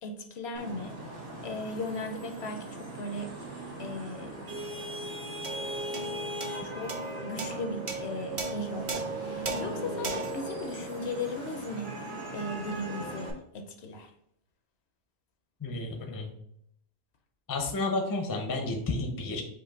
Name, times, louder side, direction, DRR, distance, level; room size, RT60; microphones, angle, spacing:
voice 1, 0.0-3.3 3.8-4.6 6.6-6.9 7.2-11.9 12.3-14.1, left 2 dB, 70° left, 5 dB, 0.9 m, -37 dB
Vehicle horn car horn honking / Traffic noise roadway noise, 0.5-13.3, right 1 dB, 85° right, 1.4 m, -40 dB
cauldron sounding, 5.4-12.0, right 2 dB, 35° right, 0.5 m, -37 dB
voice 2, 15.6-16.3 17.5-19.4, left 2 dB, 25° left, 3 dB, 0.5 m, -31 dB
5.0 x 2.7 x 3.9 m, 0.72 s
omnidirectional pair, 1.2 m